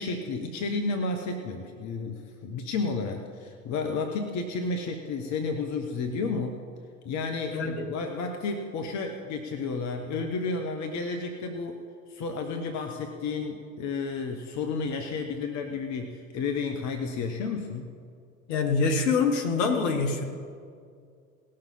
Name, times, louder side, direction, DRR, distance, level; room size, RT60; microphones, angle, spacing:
voice 1, 0.0-6.6 7.0-17.9, left 4 dB, 40° left, 4 dB, 1.1 m, -32 dB
voice 2, 7.5-7.9 18.5-20.2, left 4 dB, 60° left, 5 dB, 1.7 m, -25 dB
18.5 x 6.6 x 5.6 m, 2.2 s
figure-of-eight pair, 70°, 42 cm